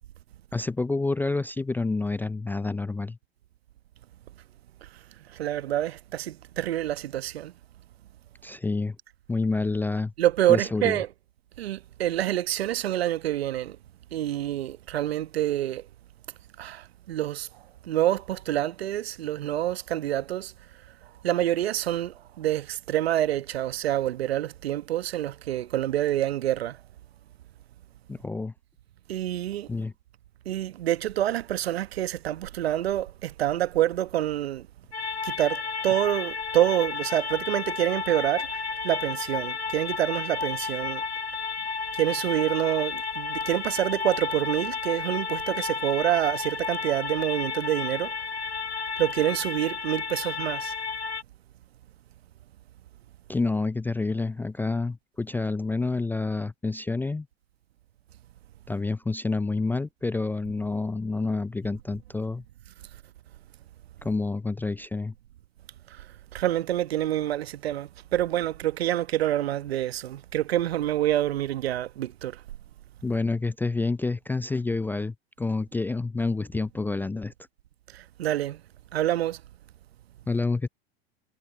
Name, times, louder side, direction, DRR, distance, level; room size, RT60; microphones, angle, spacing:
voice 1, 0.5-3.2 8.4-9.0 9.3-10.1 10.5-11.0 28.1-28.5 29.7-29.9 53.3-57.3 58.7-62.4 64.0-65.1 73.0-77.3 80.3-80.7, left 3 dB, 5° left, 0.4 m, -28 dB
voice 2, 5.3-7.5 10.2-11.1 11.6-13.8 14.1-15.8 16.6-17.5 17.8-20.5 21.2-26.8 29.1-29.7 30.4-34.7 35.2-41.0 41.9-48.1 49.0-50.7 65.9-66.0 66.3-72.4 77.9-78.6 78.9-79.4, right 13 dB, 70° right, 1.2 m, -27 dB
sound 1, 34.9-51.2, left 5 dB, 90° left, 1.9 m, -32 dB
figure-of-eight pair, 90°, 32 cm